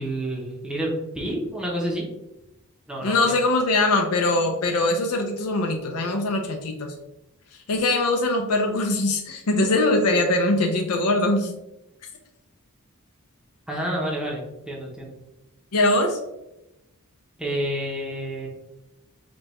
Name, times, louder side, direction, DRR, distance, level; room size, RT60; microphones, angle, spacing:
voice 1, 0.0-2.0 2.9-3.3 13.7-14.4 14.7-15.1 17.4-18.5, right 1 dB, 5° right, -3 dB, 0.7 m, -29 dB
voice 2, 3.0-6.9 7.7-11.5 15.7-16.2, left 2 dB, 80° left, 3 dB, 0.5 m, -22 dB
5.0 x 2.3 x 2.9 m, 0.92 s
head